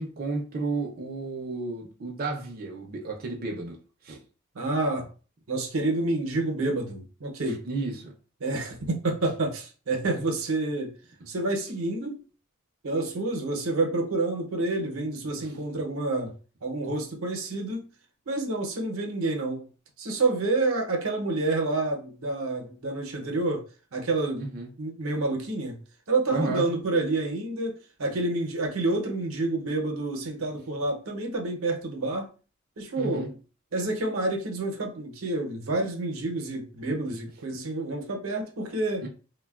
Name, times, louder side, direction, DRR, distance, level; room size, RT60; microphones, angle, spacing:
voice 1, 0.0-3.8 4.0-4.2 7.4-8.1 15.4-15.5 24.4-24.7 26.3-26.6 33.0-33.3 39.0-39.1, right 3 dB, 45° right, 0.5 m, -32 dB
voice 2, 4.5-5.1 5.5-7.6 8.4-10.9 11.3-12.2 12.8-16.3 16.6-17.8 18.3-19.7 20.0-23.6 23.9-24.5 24.8-25.8 26.1-32.3 32.8-33.4 33.7-39.1, right 2 dB, 85° right, 0.7 m, -28 dB
3.2 x 2.2 x 2.3 m
head